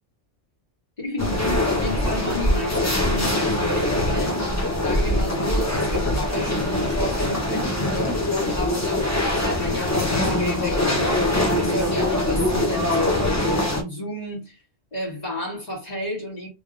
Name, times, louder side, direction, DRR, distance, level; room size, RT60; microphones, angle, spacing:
voice 1, 1.0-4.3 4.8-11.2 11.6-14.6 14.9-16.5, left 1 dB, 35° left, 1.9 m, -31 dB
sound 1, 1.2-13.8, left 1 dB, 15° left, 0.7 m, -23 dB
3.4 x 3.1 x 2.5 m
omnidirectional pair, 1.2 m